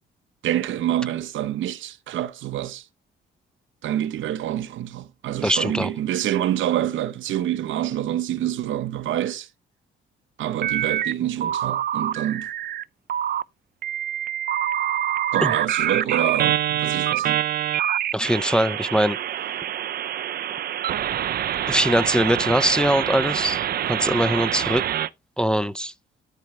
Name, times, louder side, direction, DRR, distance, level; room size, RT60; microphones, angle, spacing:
voice 1, 0.4-2.8 3.8-9.5 10.4-12.5 15.3-17.4, right 12 dB, 75° right, 0.8 m, -26 dB
voice 2, 5.4-5.9 15.4-15.5 18.1-19.2 21.7-24.8 25.4-25.9, equal, 5° left, 0.5 m, -22 dB
sound 1, 10.6-11.1 11.4-12.8 13.1-13.4 13.8-25.1, right 11 dB, 50° right, 0.4 m, -25 dB
13.0 x 4.6 x 3.1 m
cardioid pair, 90°, 20 cm